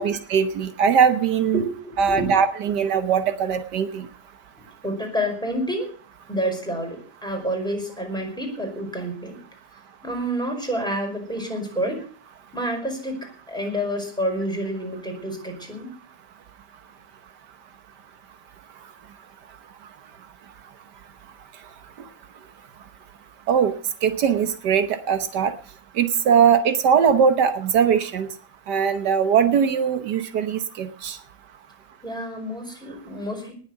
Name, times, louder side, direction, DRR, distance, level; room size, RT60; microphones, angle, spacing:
voice 1, 0.0-1.6 2.0-4.1 23.5-23.7 24.0-25.5 26.0-28.3 28.7-31.2, right 7 dB, 80° right, 9 dB, 1.6 m, -20 dB
voice 2, 1.5-2.3 4.8-6.0 6.3-9.4 10.0-12.0 12.5-15.9 32.0-33.5, equal, ahead, 2 dB, 5.1 m, -28 dB
19.0 x 7.6 x 6.6 m, 0.43 s
omnidirectional pair, 1.8 m